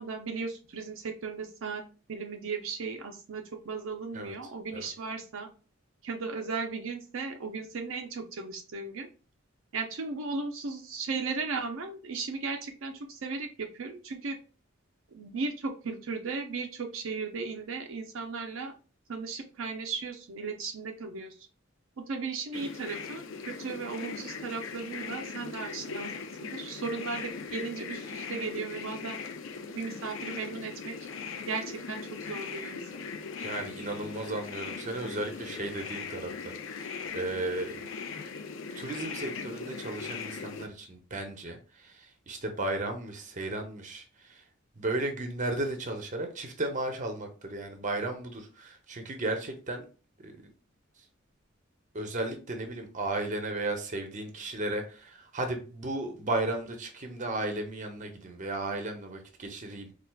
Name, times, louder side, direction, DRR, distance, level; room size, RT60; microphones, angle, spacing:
voice 1, 0.0-1.8 2.1-5.5 6.0-9.1 9.7-14.4 15.1-18.7 19.1-21.4 22.0-26.1 26.4-29.2 29.7-30.9 31.5-33.1, right 4 dB, 70° right, 0.5 m, -36 dB
sound 1, 22.5-40.7, left 5 dB, 70° left, 0.5 m, -39 dB
voice 2, 33.4-37.9 38.7-44.4 44.8-49.8 50.2-50.3 51.9-59.9, right 2 dB, 40° right, 0.7 m, -35 dB
4.5 x 2.4 x 2.2 m
head